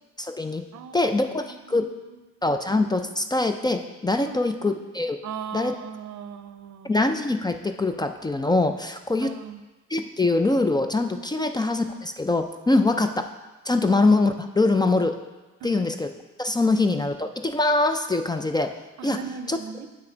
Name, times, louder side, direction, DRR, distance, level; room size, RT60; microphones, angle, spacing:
voice 1, 0.2-0.6 0.9-1.9 2.4-5.2 5.5-5.7 6.8-9.3 9.9-13.3 13.6-15.2 15.6-16.1 16.4-18.8 19.0-19.2 19.5-19.6, left 2 dB, 15° left, 7 dB, 0.4 m, -23 dB
voice 2, 0.7-1.2 1.4-2.4 4.2-4.8 5.2-6.9 9.2-9.6 11.4-11.5 12.7-12.9 13.8-13.9 15.6-15.9 19.0-19.9, right 7 dB, 65° right, 10 dB, 0.6 m, -39 dB
7.7 x 5.7 x 3.9 m, 1.1 s
cardioid pair, 90°, 30 cm